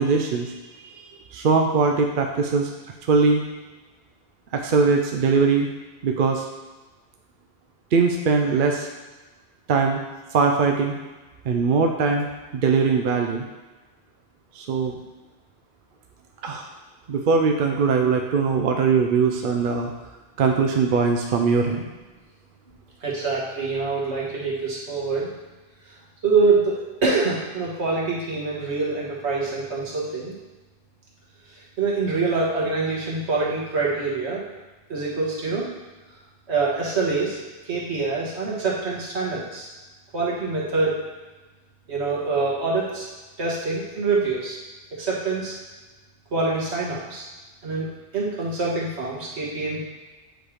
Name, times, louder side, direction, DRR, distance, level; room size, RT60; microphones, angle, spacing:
voice 1, 0.0-2.7 3.1-3.4 4.5-5.7 6.0-6.4 7.9-8.9 9.7-10.0 10.3-10.9 11.5-12.3 12.5-13.4 14.5-15.0 16.4-16.7 17.1-19.9 20.4-21.8, right 5 dB, 60° right, 2 dB, 0.7 m, -21 dB
voice 2, 22.7-25.3 26.2-30.3 31.5-34.4 34.9-35.6 36.5-37.4 37.6-39.7 40.1-41.0 41.9-43.1 43.4-44.6 44.9-45.5 46.3-47.3 47.6-49.8, right 3 dB, 85° right, -5 dB, 1.7 m, -25 dB
8.0 x 3.2 x 4.9 m, 1.2 s
omnidirectional pair, 1.1 m